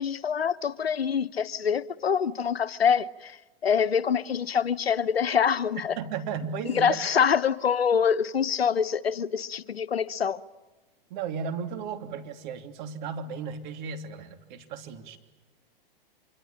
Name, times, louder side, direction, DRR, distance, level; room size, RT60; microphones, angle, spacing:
voice 1, 0.0-6.0 6.6-10.4, left 7 dB, 90° left, 1.0 m, -25 dB
voice 2, 6.0-7.0 11.1-15.2, right 6 dB, 50° right, 3.2 m, -35 dB
26.0 x 23.5 x 8.7 m
hypercardioid pair, 115°, 30 cm